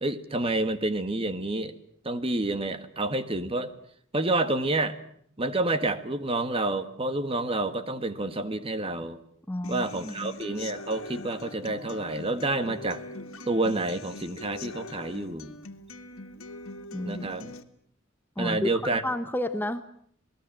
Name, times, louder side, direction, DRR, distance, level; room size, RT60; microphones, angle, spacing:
voice 1, 0.0-1.8 2.0-3.7 4.1-5.0 5.4-9.2 9.7-13.0 13.5-15.5 17.0-17.5 18.4-19.0, right 2 dB, 25° right, 11 dB, 1.5 m, -29 dB
voice 2, 9.5-10.4 16.9-17.3 18.4-18.7 19.0-19.8, left 1 dB, 10° left, 9 dB, 0.9 m, -31 dB
Human voice / Acoustic guitar, 9.6-17.6, left 2 dB, 90° left, 1.9 m, -42 dB
27.0 x 19.5 x 7.6 m, 0.64 s
head